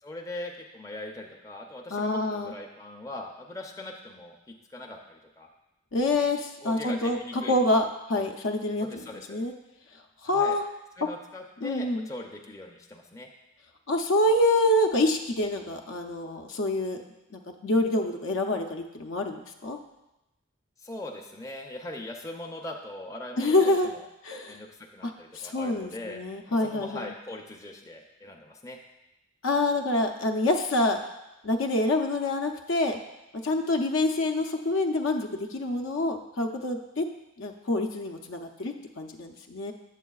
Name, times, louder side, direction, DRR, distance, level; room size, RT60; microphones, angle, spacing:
voice 1, 0.0-5.5 6.6-7.6 8.1-8.3 8.8-9.4 10.2-10.6 11.0-13.3 20.8-24.0 24.5-28.8, left 1 dB, 15° left, 1 dB, 0.5 m, -41 dB
voice 2, 1.9-2.5 5.9-9.0 9.3-9.5 10.2-10.6 11.6-12.1 13.9-17.0 17.3-19.8 23.4-23.9 24.2-24.6 25.0-27.1 29.4-31.0 31.4-33.0 33.4-37.1 37.4-39.7, left 2 dB, 70° left, 5 dB, 0.6 m, -26 dB
8.2 x 7.3 x 2.3 m, 0.93 s
head